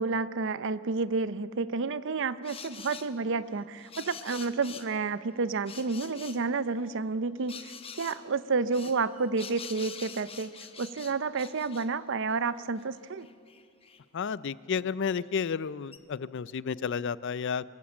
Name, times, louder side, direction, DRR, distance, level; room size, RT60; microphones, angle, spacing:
voice 1, 0.0-10.5 10.8-13.3, right 4 dB, 60° right, 16 dB, 0.6 m, -30 dB
sound 1, 2.4-3.1 3.8-4.9 5.7-6.4 7.5-8.2 8.7-11.9 12.5-12.6 12.8-14.0 15.2-15.3 15.9-16.0, left 6 dB, 25° left, 0.9 m, -45 dB
voice 2, 14.1-17.6, left 6 dB, 55° left, 18 dB, 0.4 m, -31 dB
23.5 x 16.0 x 7.2 m, 2.3 s
head